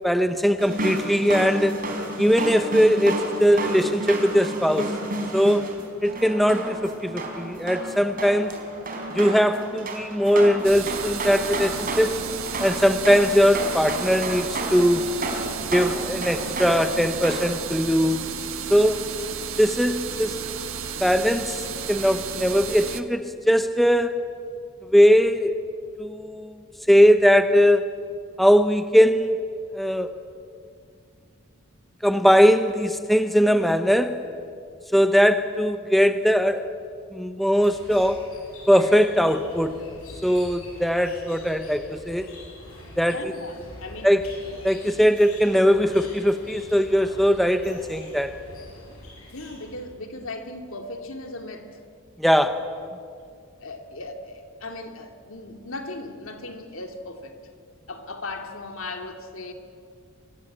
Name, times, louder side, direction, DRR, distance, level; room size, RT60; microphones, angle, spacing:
voice 1, 0.0-1.8 2.2-5.0 5.3-5.7 6.0-8.5 9.1-12.2 12.6-15.1 15.7-18.2 18.7-19.0 19.6-20.5 21.0-24.3 24.9-25.6 26.0-26.5 26.9-27.9 28.4-29.4 29.7-30.1 32.0-34.2 34.9-36.7 37.1-38.3 38.7-39.8 40.2-42.3 43.0-43.3 44.0-44.3 44.6-48.4 52.2-52.7, equal, ahead, 8 dB, 0.8 m, -20 dB
sound 1, 0.6-17.5, right 1 dB, 40° right, 4.6 m, -31 dB
sound 2, 10.6-23.0, right 7 dB, 80° right, 1.5 m, -33 dB
sound 3, 37.5-50.0, left 2 dB, 85° left, 7.4 m, -44 dB
voice 2, 43.1-44.1 49.3-51.7 53.6-57.4 57.9-59.5, left 2 dB, 70° left, 5 dB, 2.6 m, -37 dB
25.0 x 22.0 x 8.8 m, 2.3 s
head